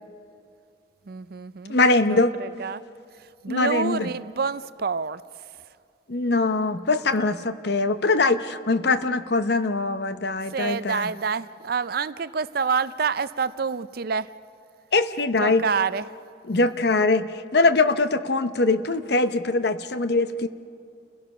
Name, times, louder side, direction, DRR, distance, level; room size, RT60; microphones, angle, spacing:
voice 1, 1.1-1.8 2.1-2.8 3.4-5.2 10.5-14.3 15.4-16.1, right 5 dB, 50° right, 15 dB, 0.4 m, -27 dB
voice 2, 1.7-2.3 3.5-4.1 6.1-11.1 14.9-15.6 16.5-20.5, left 3 dB, 55° left, 11 dB, 0.8 m, -22 dB
29.0 x 16.5 x 6.1 m, 2.4 s
head